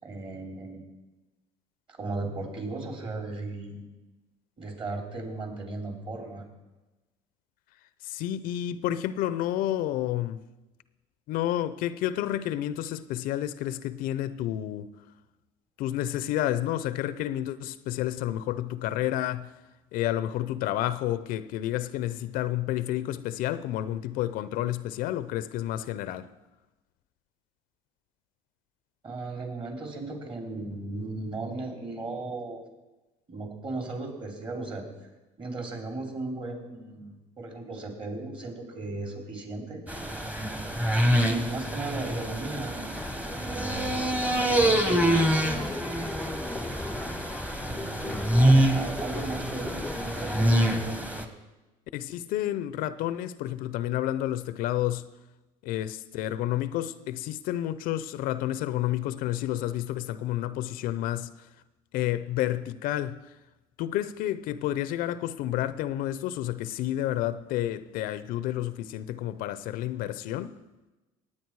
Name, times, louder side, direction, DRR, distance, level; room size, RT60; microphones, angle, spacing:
voice 1, 0.0-0.8 2.0-3.8 4.6-6.5 29.0-32.6 33.3-34.8 35.4-39.8 40.4-40.5 41.2-42.9 43.4-45.3 47.7-51.0, right 2 dB, 35° right, 3.5 m, -36 dB
voice 2, 8.0-10.4 11.3-14.9 15.8-19.5 19.9-26.3 51.9-55.1 55.6-61.5 61.9-63.3 63.8-70.6, left 13 dB, 65° left, 0.6 m, -30 dB
sound 1, 39.9-51.3, right 1 dB, 10° right, 1.4 m, -26 dB
sound 2, 42.9-50.8, left 2 dB, 5° left, 0.6 m, -38 dB
18.5 x 8.9 x 4.7 m
supercardioid pair, 100°, 16 cm